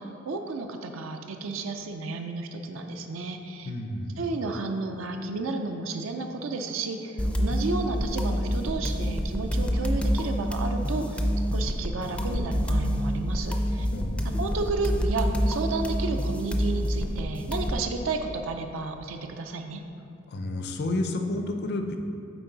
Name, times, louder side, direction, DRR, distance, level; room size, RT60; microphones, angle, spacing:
voice 1, 0.0-3.7 4.2-13.9 14.2-19.8, right 3 dB, 75° right, 5 dB, 0.5 m, -32 dB
voice 2, 3.7-4.3 13.9-14.4 20.3-22.0, left 2 dB, 55° left, 5 dB, 0.5 m, -31 dB
sound 1, 7.2-17.8, equal, 5° left, 0.4 m, -27 dB
7.9 x 4.7 x 3.9 m, 2.7 s
head